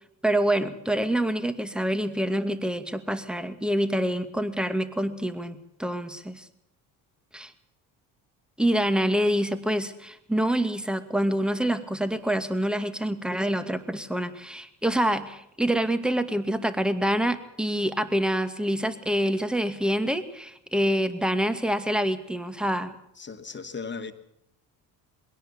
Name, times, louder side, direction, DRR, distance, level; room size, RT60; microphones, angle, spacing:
voice 1, 0.2-6.5 7.3-7.5 8.6-22.9, right 1 dB, ahead, 10 dB, 2.2 m, -26 dB
voice 2, 23.2-24.1, left 5 dB, 25° left, 7 dB, 2.4 m, -36 dB
21.5 x 17.5 x 7.2 m, 0.77 s
supercardioid pair, 75°, 43 cm